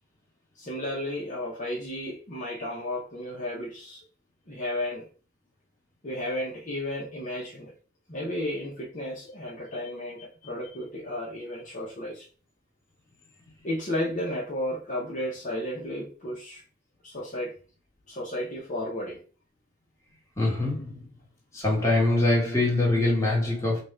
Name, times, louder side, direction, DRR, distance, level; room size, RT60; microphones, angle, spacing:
voice 1, 0.5-4.0 4.5-5.1 6.0-7.7 8.1-12.3 13.6-16.6 17.0-17.5 18.1-19.2, left 1 dB, 40° left, 1.0 m, -33 dB
voice 2, 20.4-21.1 21.5-23.8, left 2 dB, 15° left, 1.5 m, -24 dB
3.9 x 2.4 x 4.4 m
head